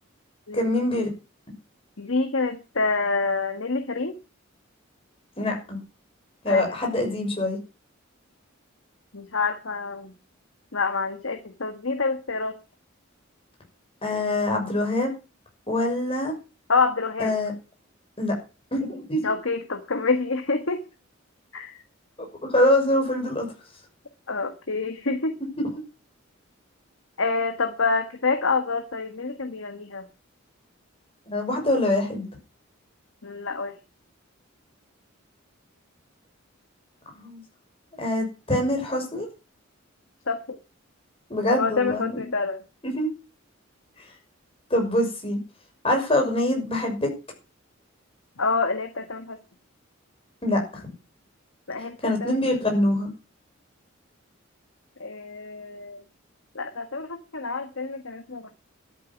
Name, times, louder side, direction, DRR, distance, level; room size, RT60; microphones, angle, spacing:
voice 1, 0.5-1.1 5.4-5.8 6.4-7.6 14.0-15.1 15.7-16.3 17.2-17.5 18.2-18.3 18.7-19.3 22.2-23.5 25.6-25.7 31.3-32.3 37.1-37.4 38.0-39.3 41.3-42.3 42.8-43.1 44.7-45.4 45.8-47.1 50.4-50.8 52.0-53.1, left 1 dB, 30° left, 2 dB, 6.2 m, -24 dB
voice 2, 2.0-4.2 6.5-6.6 9.1-10.1 10.7-12.6 16.7-17.3 19.2-20.8 21.5-21.8 24.3-25.4 27.2-30.0 33.2-33.7 40.3-40.6 41.6-42.6 48.4-49.4 51.7-52.3 55.0-56.0 56.5-58.5, left 4 dB, 75° left, 6 dB, 1.6 m, -27 dB
13.0 x 8.7 x 6.0 m, 0.32 s
head